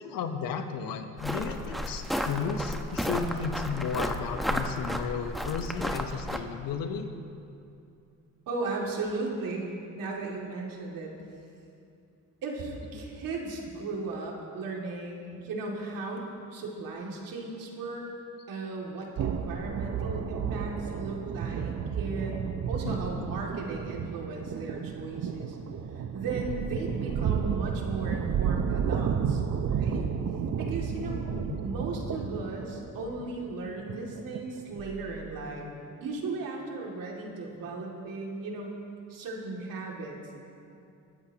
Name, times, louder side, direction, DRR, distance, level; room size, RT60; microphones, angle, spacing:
voice 1, 0.0-7.1 12.9-13.0 22.8-23.2 31.1-31.6, left 6 dB, 85° left, 7 dB, 1.1 m, -34 dB
sound 1, 1.2-6.4, equal, ahead, 1.0 m, -32 dB
voice 2, 8.5-11.1 12.4-18.1 18.5-25.6 25.9-30.1 30.6-31.2 31.6-35.7 36.0-38.8 39.1-40.2, right 3 dB, 80° right, -2 dB, 2.5 m, -36 dB
sound 2, 19.2-35.3, right 7 dB, 55° right, 0.8 m, -32 dB
21.0 x 12.5 x 2.9 m, 2.5 s
cardioid pair, 80°, 33 cm